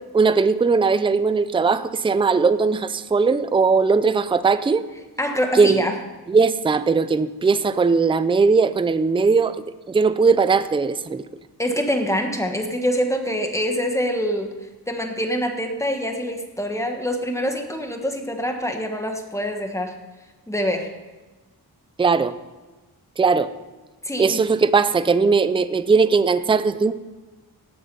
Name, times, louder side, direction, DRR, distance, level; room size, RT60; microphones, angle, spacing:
voice 1, 0.1-4.8 5.5-5.8 6.3-9.6 9.9-11.2 22.0-22.4 23.2-23.5 24.2-26.9, right 4 dB, 15° right, 13 dB, 0.4 m, -19 dB
voice 2, 5.2-6.0 11.6-14.5 14.9-19.9 20.5-20.9 24.0-24.4, equal, 10° left, 4 dB, 1.5 m, -25 dB
17.5 x 7.7 x 5.4 m, 1.2 s
wide cardioid pair, 130°, 38 cm